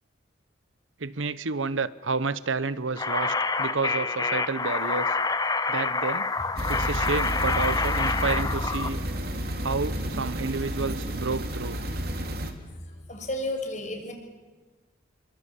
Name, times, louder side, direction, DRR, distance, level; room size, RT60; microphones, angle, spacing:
voice 1, 1.0-5.2 5.7-6.3 6.7-9.0 9.6-11.8, right 4 dB, 85° right, 15 dB, 1.0 m, -30 dB
sound 1, 3.0-8.9, left 4 dB, 20° left, 1.0 m, -27 dB
sound 2, 6.6-12.5, equal, 50° right, 3.1 m, -31 dB
voice 2, 12.6-14.1, left 1 dB, 40° left, 4 dB, 6.0 m, -33 dB
29.0 x 23.5 x 8.4 m, 1.3 s
head